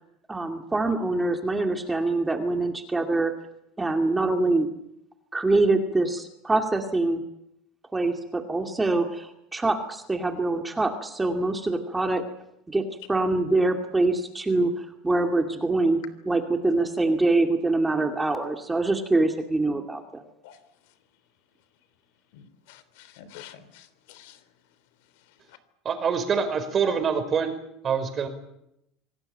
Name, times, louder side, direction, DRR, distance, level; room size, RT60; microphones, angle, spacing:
voice 1, 0.3-3.3 3.8-4.7 5.3-7.2 7.9-12.2 12.7-20.2, right 2 dB, 10° right, 5 dB, 2.3 m, -24 dB
voice 2, 22.3-24.4, left 10 dB, 75° left, 14 dB, 3.5 m, -48 dB
voice 3, 25.9-27.5 27.8-28.3, right 6 dB, 30° right, 8 dB, 5.1 m, -25 dB
27.0 x 19.0 x 9.1 m, 0.81 s
supercardioid pair, 135°, 0 cm